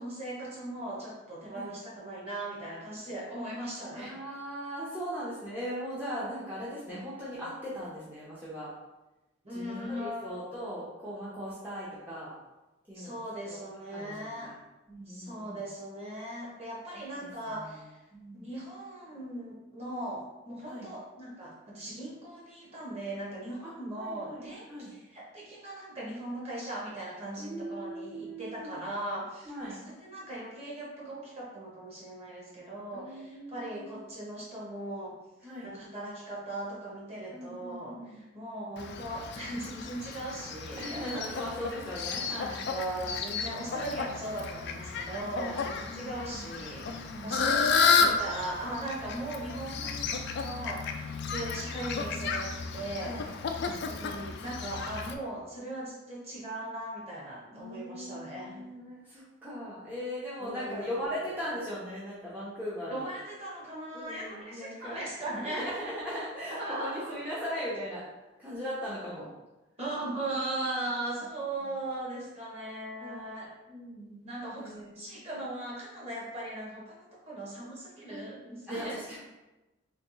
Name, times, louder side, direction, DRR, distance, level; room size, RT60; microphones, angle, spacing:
voice 1, 0.0-4.1 9.4-10.3 12.9-14.6 15.1-17.9 18.3-35.1 35.6-41.4 42.7-53.2 53.9-58.7 60.4-61.3 62.9-65.6 66.4-67.1 69.8-73.5 74.2-79.0, right 1 dB, 30° right, -5 dB, 1.1 m, -39 dB
voice 2, 3.9-8.7 9.5-12.3 12.9-13.2 13.4-13.6 13.9-14.6 14.9-15.6 16.9-17.1 17.4-17.8 18.1-18.5 20.6-20.9 23.6-24.9 27.3-28.8 29.5-29.8 32.9-34.0 35.4-35.7 37.3-38.2 40.7-42.7 43.4-43.8 45.4-46.5 46.9-47.4 53.0-53.8 57.5-63.1 63.9-68.0 68.4-69.3 73.0-75.1 78.0-78.3 78.7-79.2, equal, 10° right, -10 dB, 0.7 m, -39 dB
Fowl, 38.8-55.1, left 5 dB, 55° left, 0.3 m, -32 dB
3.5 x 3.0 x 3.0 m, 1.1 s
head